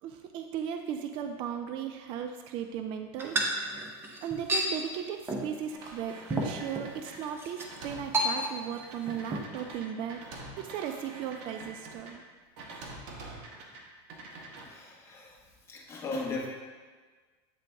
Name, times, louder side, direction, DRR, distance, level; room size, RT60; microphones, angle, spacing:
voice 1, 0.0-3.5 4.2-12.2, right 8 dB, 40° right, 6 dB, 0.4 m, -37 dB
sound 1, 3.2-4.7 5.3-5.5 5.9-6.0 6.3-6.9 7.4-7.7 8.1-8.8 9.1-9.4, right 1 dB, 15° right, 0.7 m, -31 dB
sound 2, 5.7-12.1 12.6-13.8 14.1-14.7, right 2 dB, 55° right, 1.1 m, -46 dB
voice 2, 14.6-15.3 15.7-16.5, left 3 dB, 20° left, -3 dB, 1.3 m, -37 dB
8.3 x 3.9 x 3.4 m, 1.4 s
supercardioid pair, 150°, 14 cm